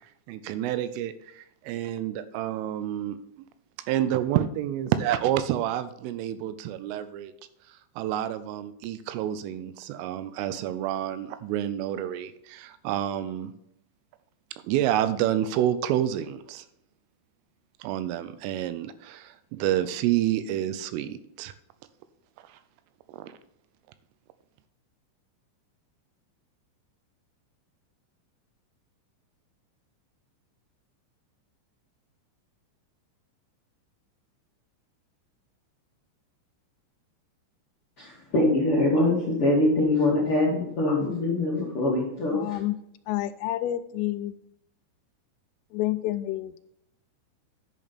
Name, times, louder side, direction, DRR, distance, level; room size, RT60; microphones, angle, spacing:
voice 1, 0.3-3.5 3.9-7.3 7.7-13.5 14.6-16.7 17.8-21.5 22.5-22.6 23.1-23.4, right 11 dB, 85° right, 13 dB, 3.2 m, -29 dB
voice 2, 38.0-42.6, left 2 dB, 65° left, -5 dB, 1.4 m, -23 dB
voice 3, 42.3-42.8 43.1-44.3 45.7-46.5, left 14 dB, 90° left, 9 dB, 3.2 m, -29 dB
10.5 x 6.2 x 4.2 m, 0.77 s
omnidirectional pair, 5.7 m